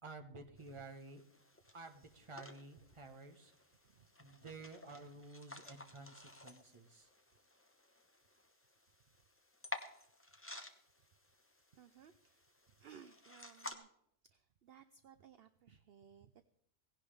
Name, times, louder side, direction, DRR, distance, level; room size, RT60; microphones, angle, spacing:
voice 1, 0.0-1.2 1.7-3.5 4.2-7.1, right 3 dB, 25° right, 4 dB, 1.2 m, -52 dB
sound 1, 0.6-13.7, left 2 dB, 10° left, 0.9 m, -53 dB
voice 2, 11.7-12.5 12.8-13.9 14.2-16.4, right 8 dB, 55° right, 10 dB, 0.8 m, -60 dB
17.5 x 16.5 x 3.4 m, 0.70 s
omnidirectional pair, 1.4 m